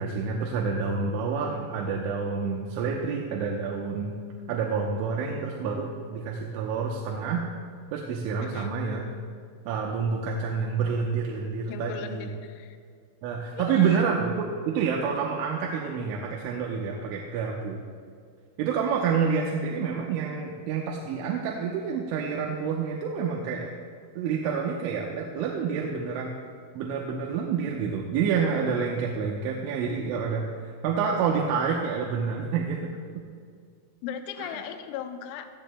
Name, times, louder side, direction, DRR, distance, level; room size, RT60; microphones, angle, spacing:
voice 1, 0.0-4.2 4.5-7.5 7.9-9.0 9.7-12.3 13.2-17.8 18.6-23.7 24.2-26.4 26.7-30.5 30.8-33.3 34.4-34.5, right 6 dB, 85° right, -1 dB, 3.3 m, -28 dB
voice 2, 8.4-8.8 11.7-12.8 13.5-14.0 34.0-35.5, left 9 dB, 85° left, 6 dB, 3.1 m, -38 dB
19.5 x 13.5 x 2.2 m, 2.2 s
omnidirectional pair, 5.5 m